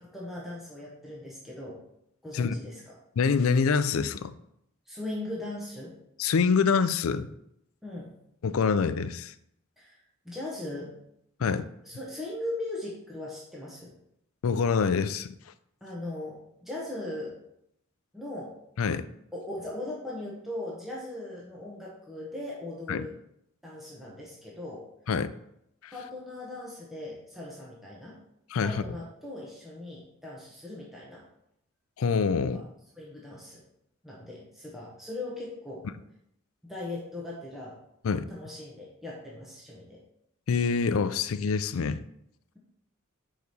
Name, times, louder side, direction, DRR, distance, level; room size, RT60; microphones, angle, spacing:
voice 1, 0.0-1.8 2.2-2.9 4.9-5.9 7.8-8.1 9.8-10.0 10.2-10.9 11.4-11.6 11.8-13.9 15.8-17.4 18.1-18.6 19.3-23.1 23.6-24.9 25.9-28.2 28.6-31.2 32.5-32.6 33.0-33.6 34.0-35.9 36.6-37.8 38.3-40.0, left 1 dB, ahead, -5 dB, 1.1 m, -39 dB
voice 2, 3.2-4.4 6.2-7.3 8.4-9.3 11.4-11.6 14.4-15.3 18.8-19.1 22.9-23.1 25.1-25.3 25.8-25.9 28.5-28.8 32.0-32.6 38.0-38.3 40.5-42.0, left 5 dB, 70° left, 13 dB, 0.4 m, -25 dB
4.8 x 4.7 x 5.4 m, 0.77 s
head